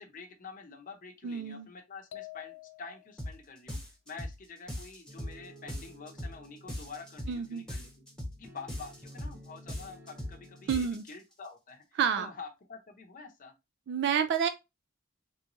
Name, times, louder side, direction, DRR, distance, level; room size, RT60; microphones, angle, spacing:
voice 1, 0.0-3.8 4.1-7.9 8.4-13.5, left 4 dB, 40° left, 0.7 m, -47 dB
voice 2, 1.2-1.7 7.3-7.7 10.7-11.0 12.0-12.3 13.9-14.5, right 7 dB, 55° right, 0.3 m, -29 dB
sound 1, 2.1-3.3, left 15 dB, 90° left, 0.3 m, -47 dB
sound 2, 3.2-3.4 3.7-4.4 4.7-5.4 5.7-6.4 6.7-7.4 7.7-8.4 8.7-9.4 9.7-10.4 10.7-11.1, left 1 dB, 5° left, 1.0 m, -39 dB
sound 3, 5.1-10.9, equal, 15° right, 0.6 m, -54 dB
3.4 x 3.0 x 2.5 m
head